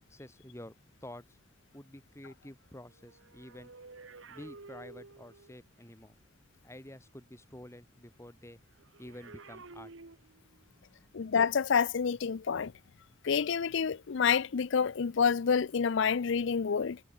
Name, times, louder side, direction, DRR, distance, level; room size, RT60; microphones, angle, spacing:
voice 1, 0.0-1.4 1.7-3.7 4.3-6.1 6.6-8.6 9.0-9.9 10.4-11.1, left 1 dB, 15° left, 2.5 m, -50 dB
sound 1, 2.9-5.7 8.8-10.7 11.6-11.8, right 3 dB, 75° right, 1.4 m, -52 dB
voice 2, 11.1-12.7 13.2-17.0, left 6 dB, 65° left, 0.5 m, -28 dB
head